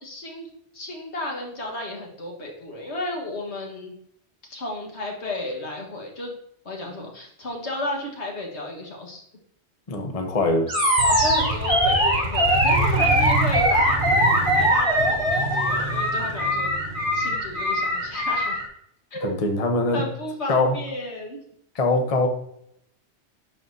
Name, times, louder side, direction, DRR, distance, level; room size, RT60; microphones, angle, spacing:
voice 1, 0.0-3.9 4.5-6.3 6.7-9.2 11.0-14.0 14.5-16.7 17.1-18.6 19.1-19.3 19.9-21.4, left 1 dB, 75° left, 0 dB, 1.8 m, -33 dB
voice 2, 9.9-10.7 19.2-20.0 20.5-20.8 21.7-22.3, left 2 dB, 35° left, 4 dB, 0.8 m, -22 dB
Animal, 10.7-18.6, equal, 45° right, 2.2 m, -21 dB
Motorcycle, 11.0-18.6, right 2 dB, 85° right, 1.1 m, -29 dB
11.0 x 4.2 x 2.7 m, 0.72 s
omnidirectional pair, 1.2 m